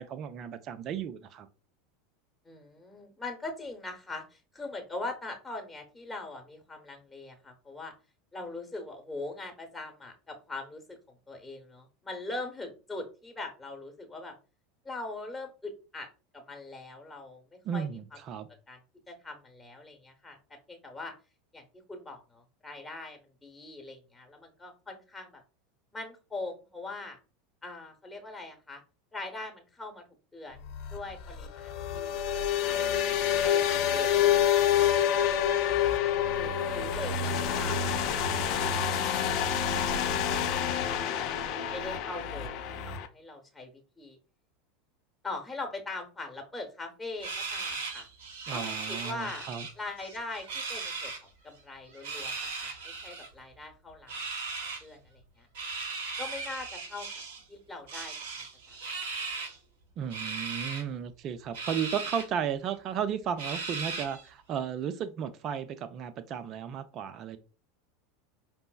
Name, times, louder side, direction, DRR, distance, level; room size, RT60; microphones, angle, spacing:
voice 1, 0.0-1.5 17.6-18.5 48.5-49.7 60.0-67.4, right 8 dB, 40° right, 0.4 m, -34 dB
voice 2, 2.4-7.9 8.3-11.0 11.3-14.4 14.8-16.1 16.3-17.9 18.7-18.8 19.1-21.1 21.5-21.6 21.9-25.4 25.9-27.2 27.6-28.8 29.1-30.0 30.3-30.6 30.9-32.2 32.6-33.0 33.4-34.4 36.4-40.6 41.7-42.6 42.8-44.2 45.2-48.1 48.5-49.5 49.8-51.1 51.4-54.2 54.8-55.5 56.2-57.1 57.5-58.8, left 2 dB, 10° left, 1.0 m, -42 dB
sound 1, 30.6-43.1, left 9 dB, 50° left, 0.5 m, -27 dB
sound 2, 47.2-49.7 50.0-51.2 51.9-53.3 54.1-54.8 55.6-57.4 57.9-59.6 60.1-60.8 61.5-62.3 62.7-62.8 63.4-64.3, right 4 dB, 70° right, 0.8 m, -37 dB
5.1 x 2.0 x 2.3 m
hypercardioid pair, 85°, 0 cm